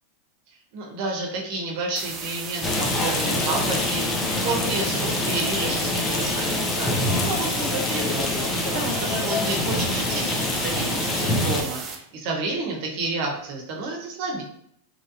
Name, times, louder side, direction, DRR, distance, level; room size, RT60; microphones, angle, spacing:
voice 1, 0.7-14.4, right 3 dB, 55° right, 0 dB, 0.9 m, -30 dB
sound 1, 2.0-12.0, right 4 dB, 25° right, 0.5 m, -35 dB
Rain, 2.6-11.6, left 2 dB, 25° left, 0.6 m, -25 dB
3.1 x 2.6 x 2.6 m, 0.71 s
hypercardioid pair, 125°, 0 cm